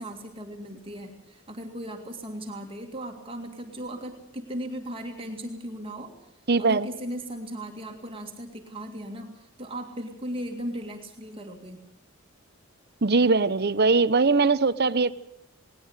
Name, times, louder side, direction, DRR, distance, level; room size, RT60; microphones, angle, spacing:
voice 1, 0.0-6.3 6.6-11.8, right 1 dB, 25° right, 2 dB, 2.2 m, -37 dB
voice 2, 6.5-6.9 13.0-15.1, right 4 dB, 45° right, 15 dB, 0.8 m, -21 dB
19.5 x 19.0 x 8.0 m, 0.76 s
head